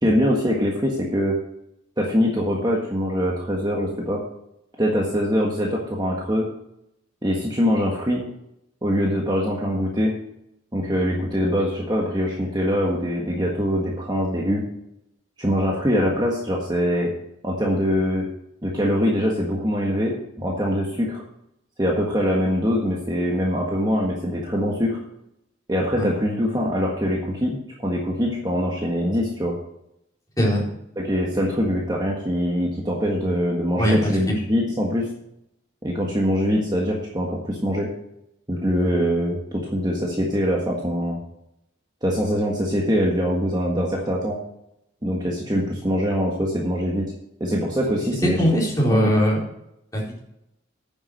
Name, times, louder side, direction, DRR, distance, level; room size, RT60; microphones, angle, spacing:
voice 1, 0.0-1.4 2.0-4.2 4.8-6.5 7.2-8.2 8.8-10.2 10.7-14.6 15.4-17.1 17.4-18.3 18.6-21.2 21.8-25.0 25.7-27.6 27.8-29.5 30.9-35.1 35.8-37.9 38.5-41.2 42.0-44.4 45.0-47.1 47.4-48.6 48.9-49.1, equal, 20° right, -2 dB, 1.5 m, -23 dB
voice 2, 33.7-34.1 48.4-49.4 49.9-50.2, equal, 15° left, -4 dB, 4.0 m, -20 dB
9.8 x 7.3 x 6.4 m, 0.80 s
head